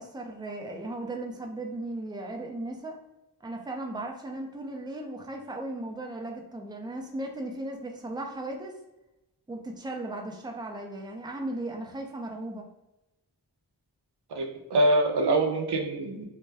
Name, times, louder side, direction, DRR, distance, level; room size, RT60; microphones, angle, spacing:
voice 1, 0.0-3.0 3.4-8.8 9.5-12.7, right 1 dB, 10° right, 2 dB, 0.6 m, -36 dB
voice 2, 14.3-16.3, right 1 dB, 70° right, 2 dB, 0.6 m, -24 dB
2.7 x 2.2 x 3.3 m, 0.95 s
cardioid pair, 40°, 41 cm